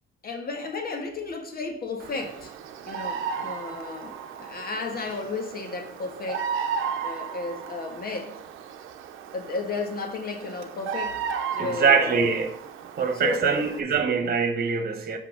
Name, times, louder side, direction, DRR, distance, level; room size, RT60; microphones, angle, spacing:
voice 1, 0.2-2.5 2.9-6.5 7.0-8.4 9.3-11.2 11.5-12.4 13.1-13.7, left 3 dB, 50° left, 1.5 m, -33 dB
Bird vocalization bird call bird song, 2.0-13.8, right 6 dB, 85° right, 0.7 m, -35 dB
voice 2, 11.6-12.5 13.0-15.2, right 5 dB, 50° right, 1.3 m, -23 dB
6.0 x 5.4 x 5.1 m
cardioid pair, 90°, 20 cm